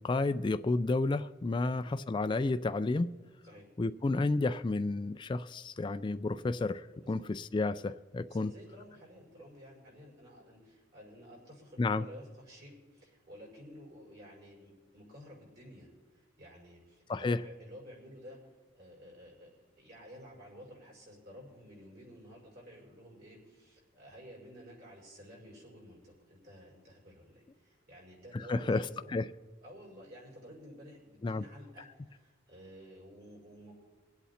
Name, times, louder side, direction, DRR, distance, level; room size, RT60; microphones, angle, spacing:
voice 1, 0.0-3.1 3.8-8.5 11.8-12.0 17.1-17.4 28.3-29.3 31.2-31.4, left 3 dB, 25° left, 11 dB, 0.3 m, -31 dB
voice 2, 8.3-29.1 29.6-33.7, equal, 55° right, -3 dB, 5.5 m, -52 dB
23.5 x 8.3 x 4.2 m, 1.2 s
head